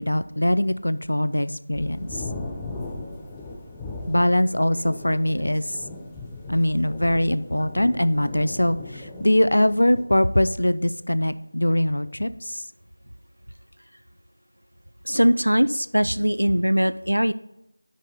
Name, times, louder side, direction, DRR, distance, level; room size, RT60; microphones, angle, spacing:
voice 1, 0.0-2.2 4.1-5.8 6.5-12.6, left 1 dB, 70° left, 13 dB, 0.5 m, -22 dB
sound 1, 1.7-10.0, left 2 dB, 5° left, 0.5 m, -38 dB
voice 2, 15.1-17.3, equal, 90° right, 14 dB, 0.4 m, -21 dB
6.3 x 5.4 x 6.7 m, 0.88 s
figure-of-eight pair, 170°, 0 cm